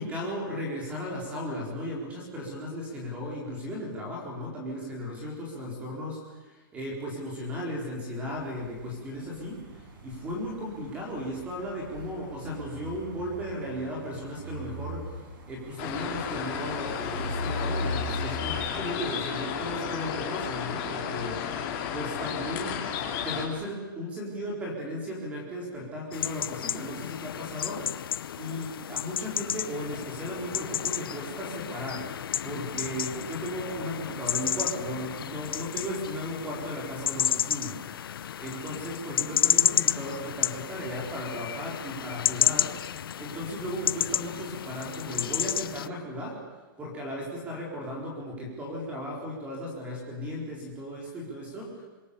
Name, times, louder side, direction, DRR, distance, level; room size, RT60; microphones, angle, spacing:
voice 1, 0.0-15.2 15.5-22.9 23.2-28.1 28.4-42.8 43.2-46.4 46.8-51.8, equal, 10° right, -2 dB, 4.1 m, -36 dB
sound 1, 8.3-18.7, left 1 dB, 70° right, 6.3 m, -39 dB
sound 2, 15.8-23.5, left 8 dB, 30° left, 3.1 m, -33 dB
sound 3, 26.1-45.9, left 9 dB, 85° left, 0.7 m, -31 dB
26.0 x 22.0 x 7.1 m, 1.2 s
hypercardioid pair, 175°, 12 cm